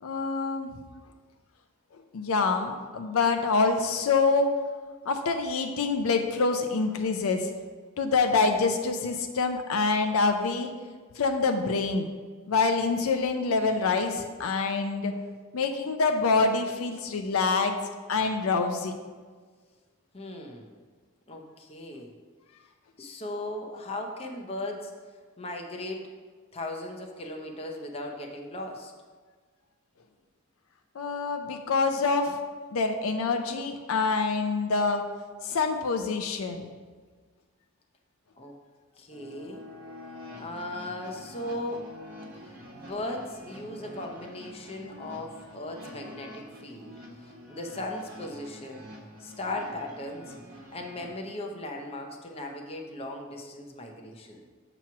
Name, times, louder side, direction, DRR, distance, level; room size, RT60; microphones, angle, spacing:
voice 1, 0.0-0.7 2.1-4.6 5.1-7.5 8.0-10.7 11.2-12.1 12.5-15.1 15.5-18.9 31.0-32.4 32.7-35.1 35.4-36.7, left 4 dB, 75° left, 5 dB, 0.5 m, -26 dB
voice 2, 20.1-20.7 21.3-22.1 23.0-24.9 25.4-26.0 26.5-28.9 38.3-38.6 39.0-39.6 40.4-41.9 42.7-47.0 47.5-48.9 49.2-50.3 50.7-54.5, left 1 dB, 25° left, 2 dB, 0.7 m, -37 dB
sound 1, 39.1-51.1, equal, 40° right, 1.2 m, -46 dB
7.2 x 3.0 x 5.8 m, 1.5 s
head